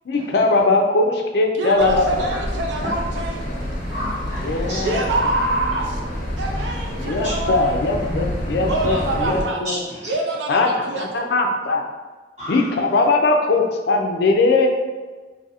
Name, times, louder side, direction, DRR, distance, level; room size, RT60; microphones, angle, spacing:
voice 1, 0.1-2.2 4.4-5.0 6.9-9.8 10.5-11.9 12.5-14.7, left 3 dB, 60° left, 3 dB, 0.4 m, -20 dB
voice 2, 1.6-3.4 4.8-6.0 6.4-7.7 8.6-9.6 10.0-11.3, right 2 dB, 75° right, 1 dB, 0.4 m, -25 dB
sound 1, 1.8-9.4, equal, 45° left, 0.8 m, -28 dB
voice 3, 3.9-4.9 6.6-6.7 7.2-7.3 9.6-10.1 12.4-12.6, equal, 40° right, -8 dB, 1.3 m, -31 dB
2.7 x 2.5 x 4.0 m, 1.3 s
head